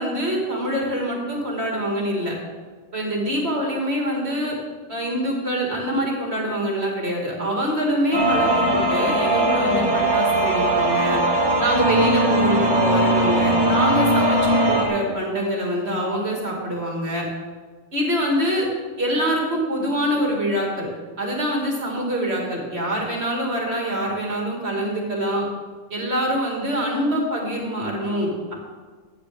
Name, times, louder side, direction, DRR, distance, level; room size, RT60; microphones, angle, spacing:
voice 1, 0.0-2.3 2.9-4.6 4.9-11.2 11.6-17.2 17.9-18.7 19.0-20.9 21.2-25.4 25.9-28.5, equal, 55° right, -2 dB, 2.6 m, -25 dB
sound 1, 8.1-14.9, right 1 dB, 20° right, 1.5 m, -20 dB
14.5 x 9.4 x 3.6 m, 1.5 s
omnidirectional pair, 1.3 m